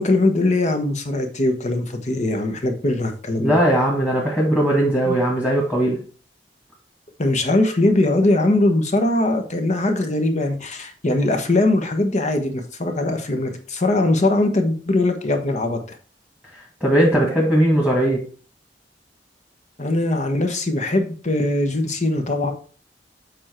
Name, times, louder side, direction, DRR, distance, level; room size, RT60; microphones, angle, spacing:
voice 1, 0.0-3.6 5.1-5.2 7.2-16.0 19.8-22.5, left 2 dB, 40° left, 6 dB, 1.2 m, -21 dB
voice 2, 3.4-6.0 16.8-18.2, right 1 dB, 5° left, -3 dB, 1.8 m, -18 dB
7.4 x 4.5 x 4.4 m, 0.40 s
head